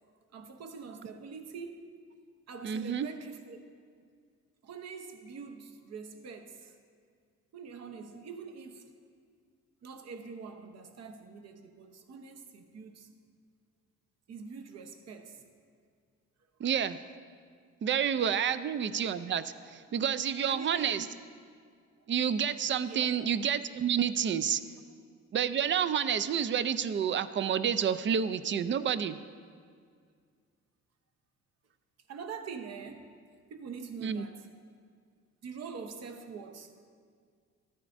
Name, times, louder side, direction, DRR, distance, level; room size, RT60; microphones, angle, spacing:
voice 1, 0.3-1.8 2.5-3.6 4.6-6.8 7.5-8.9 9.8-13.1 14.3-15.4 20.4-21.1 22.8-23.1 32.1-33.1 33.5-34.5 35.4-36.7, right 5 dB, 60° right, 6 dB, 0.9 m, -44 dB
voice 2, 2.6-3.1 16.6-17.0 17.8-21.1 22.1-24.6 25.3-29.2 34.0-34.2, right 8 dB, 40° right, 13 dB, 0.4 m, -29 dB
13.5 x 9.3 x 2.6 m, 2.1 s
cardioid pair, 90°, 30 cm